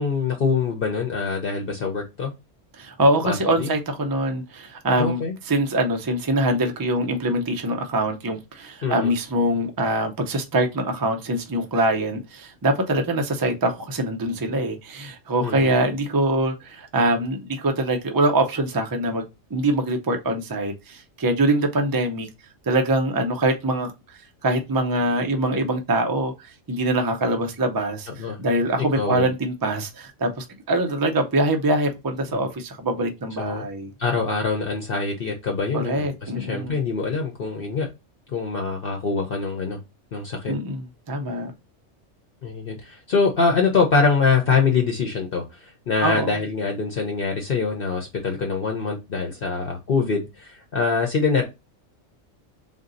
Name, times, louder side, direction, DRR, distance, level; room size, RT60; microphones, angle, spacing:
voice 1, 0.0-2.3 3.2-3.7 5.0-5.3 8.8-9.1 15.4-15.7 28.2-28.4 28.9-29.3 32.3-32.4 33.4-33.6 34.0-37.9 38.3-39.8 40.1-40.5 42.4-51.4, left 4 dB, 50° left, 0.8 m, -24 dB
voice 2, 2.8-5.2 5.5-22.3 22.7-23.9 24.4-26.3 26.7-33.9 35.7-36.8 40.5-41.5 46.0-46.4, right 1 dB, 25° right, 0.4 m, -23 dB
3.7 x 2.7 x 3.8 m
omnidirectional pair, 1.3 m